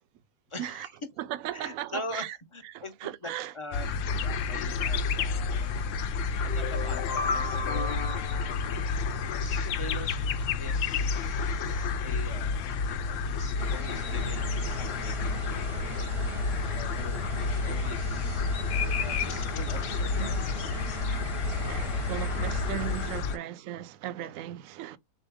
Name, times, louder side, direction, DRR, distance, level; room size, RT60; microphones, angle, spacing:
voice 1, 0.5-0.9 1.5-15.3 16.7-18.5 19.0-20.9 23.2-23.4 24.2-24.3, left 2 dB, 35° left, 0.4 m, -44 dB
voice 2, 1.2-2.4 2.7-3.5 21.7-25.0, right 12 dB, 65° right, 0.9 m, -37 dB
sound 1, 3.7-23.4, left 4 dB, 70° left, 0.8 m, -30 dB
sound 2, 6.5-9.5, left 4 dB, 90° left, 0.5 m, -34 dB
sound 3, 13.6-23.2, right 4 dB, 30° right, 0.7 m, -41 dB
3.9 x 3.0 x 3.4 m
omnidirectional pair, 1.7 m